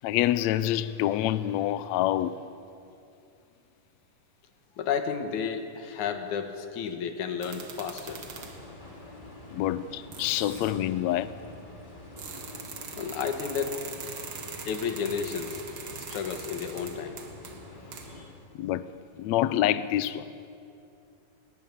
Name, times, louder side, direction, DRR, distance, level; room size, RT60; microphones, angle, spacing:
voice 1, 0.0-2.4 9.5-11.3 18.5-18.9 19.2-20.3, left 13 dB, 85° left, 1.5 m, -27 dB
voice 2, 4.8-8.5 12.9-13.9 14.7-15.6 16.1-17.2 18.1-18.3, left 7 dB, 65° left, 2.7 m, -32 dB
sound 1, 7.4-8.7 9.6-9.7 10.1-10.8 12.2-18.3, right 5 dB, 45° right, 1.8 m, -42 dB
sound 2, 8.0-18.3, left 2 dB, 15° left, 2.6 m, -46 dB
20.0 x 19.5 x 8.4 m
omnidirectional pair, 3.9 m